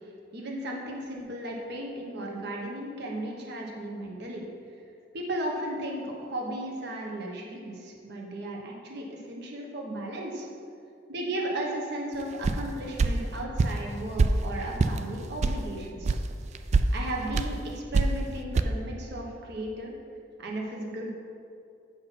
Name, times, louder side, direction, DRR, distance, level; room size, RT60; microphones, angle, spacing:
voice 1, 0.3-4.4 5.1-10.5 11.1-16.2 16.9-19.9 20.4-21.1, right 1 dB, 60° right, -1 dB, 1.2 m, -35 dB
sound 1, 12.4-12.6 13.0-13.1 13.6-13.8 14.2-14.3 14.8-15.0 15.4-15.6 16.0-16.2 16.5-16.9 17.3-17.5 17.9-18.2 18.5-18.6, right 3 dB, 35° right, 0.3 m, -23 dB
7.8 x 5.6 x 4.2 m, 2.5 s
head